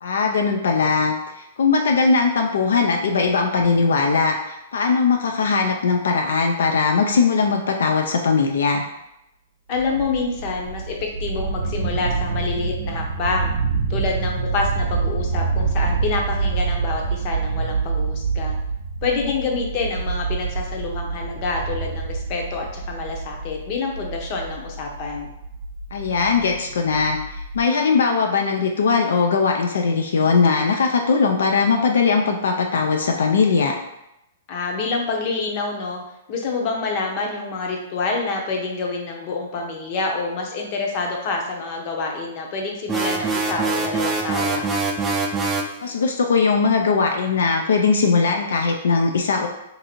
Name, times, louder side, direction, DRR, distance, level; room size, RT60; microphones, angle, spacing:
voice 1, 0.0-8.8 25.9-33.8 45.8-49.5, left 4 dB, 85° left, 3 dB, 0.4 m, -20 dB
voice 2, 9.7-13.5 13.9-18.6 19.0-25.3 34.5-36.0 36.3-44.7, left 4 dB, 40° left, 1 dB, 0.7 m, -27 dB
sound 1, 9.7-27.6, right 4 dB, 75° right, 0.5 m, -26 dB
sound 2, 42.9-45.8, right 3 dB, 15° right, 0.4 m, -24 dB
2.7 x 2.6 x 4.2 m, 0.87 s
hypercardioid pair, 145°, 0 cm